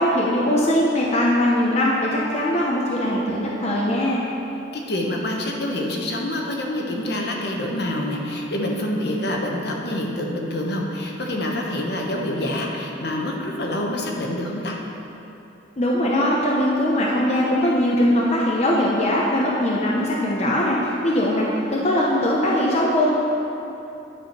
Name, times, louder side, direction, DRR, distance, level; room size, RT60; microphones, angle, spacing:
voice 1, 0.0-4.2 15.8-23.1, left 1 dB, 35° left, -4 dB, 0.8 m, -21 dB
voice 2, 4.7-14.8, left 1 dB, 55° left, 0 dB, 1.1 m, -26 dB
10.5 x 5.0 x 5.8 m, 3.0 s
head